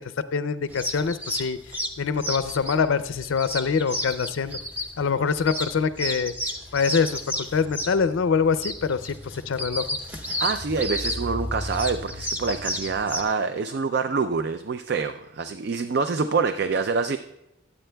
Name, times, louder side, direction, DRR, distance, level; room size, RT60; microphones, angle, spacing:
voice 1, 0.3-1.6 2.0-4.6 5.0-6.3 6.7-9.8, left 5 dB, 75° left, 12 dB, 0.4 m, -24 dB
sound 1, 0.7-13.2, left 1 dB, 10° right, 0.8 m, -32 dB
voice 2, 10.4-17.2, right 4 dB, 50° right, 10 dB, 0.4 m, -26 dB
21.5 x 8.7 x 2.3 m, 0.90 s
head